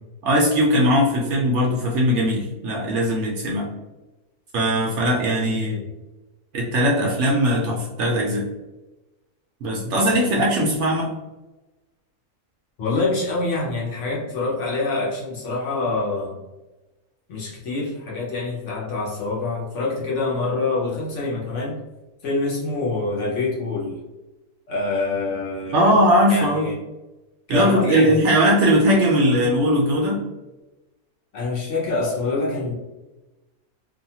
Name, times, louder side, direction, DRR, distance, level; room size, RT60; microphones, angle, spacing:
voice 1, 0.2-3.7 4.5-5.8 6.5-8.5 9.6-11.1 25.7-26.7 27.5-30.2, equal, 65° right, -2 dB, 0.8 m, -19 dB
voice 2, 12.8-16.4 17.3-21.8 22.2-24.0 24.7-26.0 26.3-26.8 27.5-28.2 31.3-32.8, left 3 dB, 60° left, -4 dB, 1.0 m, -26 dB
2.7 x 2.3 x 2.7 m, 1.1 s
omnidirectional pair, 1.5 m